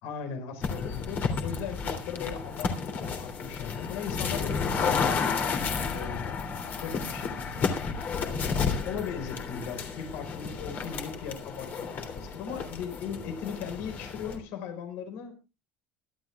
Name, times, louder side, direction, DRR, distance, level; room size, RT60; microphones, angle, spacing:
voice 1, 0.0-2.7 3.0-5.2 5.8-6.5 6.7-7.7 8.8-15.3, left 6 dB, 80° left, 7 dB, 4.7 m, -38 dB
sound 1, 0.6-14.4, left 5 dB, 45° left, 3.1 m, -32 dB
23.5 x 12.0 x 2.4 m, 0.29 s
cardioid pair, 135°, 4 cm